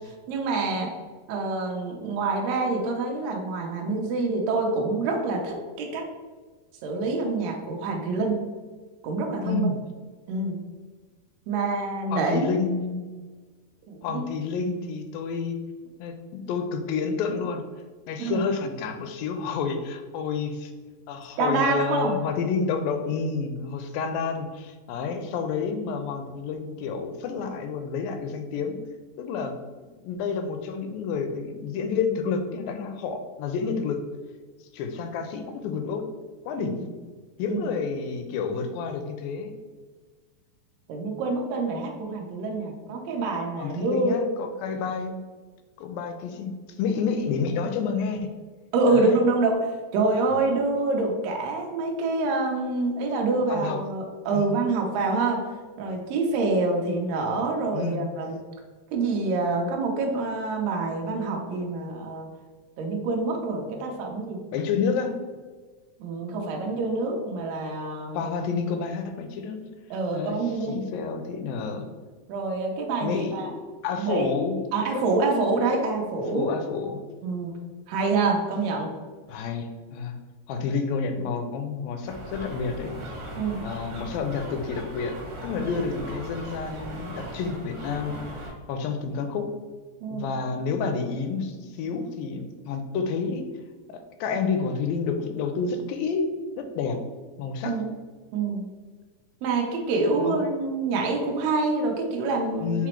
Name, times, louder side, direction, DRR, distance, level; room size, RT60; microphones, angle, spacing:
voice 1, 0.3-0.9 1.3-6.0 6.8-8.4 9.0-9.7 10.3-10.6 11.5-12.5 13.9-14.3 18.2-18.5 21.4-22.2 36.8-36.9 37.5-37.6 40.9-44.2 48.7-49.6 49.9-55.4 55.8-58.4 58.9-62.3 62.8-64.4 66.0-68.3 69.9-70.8 72.3-73.5 74.0-74.3 74.7-76.5 77.2-77.5 77.9-78.9 83.4-83.6 85.5-85.7 90.0-90.2 97.6-97.9 98.3-98.7 99.4-102.9, right 3 dB, 90° right, 1 dB, 1.4 m, -26 dB
voice 2, 9.4-9.8 12.1-13.1 14.0-15.6 16.0-17.6 18.1-20.7 21.1-28.8 29.2-29.6 30.0-34.0 34.7-36.1 36.5-36.8 37.4-39.5 43.6-45.2 45.8-48.3 48.9-49.2 50.3-50.4 53.5-53.8 54.3-54.5 57.7-58.1 64.5-65.2 68.1-69.7 70.1-71.9 73.0-73.6 73.8-74.6 74.9-75.1 76.3-77.0 79.3-80.2 80.5-82.9 83.6-89.5 90.1-93.5 93.9-97.0 97.4-97.8 100.2-100.4 102.6-102.9, left 5 dB, 85° left, 6 dB, 2.2 m, -29 dB
sound 1, 82.0-88.5, equal, 65° right, 1.4 m, -38 dB
5.8 x 2.0 x 4.4 m, 1.4 s
omnidirectional pair, 4.1 m